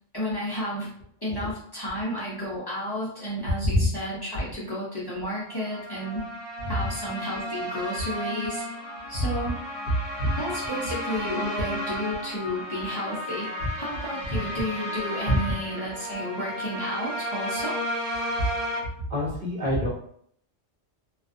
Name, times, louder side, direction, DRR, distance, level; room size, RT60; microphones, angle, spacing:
voice 1, 0.1-0.9 1.2-6.2 6.7-8.6 9.1-9.6 10.4-13.5 13.8-17.8, equal, 30° left, -8 dB, 0.5 m, -32 dB
sound 1, 5.4-18.8, equal, 5° left, 0.9 m, -33 dB
voice 2, 19.1-19.9, equal, 45° right, -6 dB, 0.8 m, -25 dB
2.4 x 2.3 x 2.5 m, 0.66 s
omnidirectional pair, 1.3 m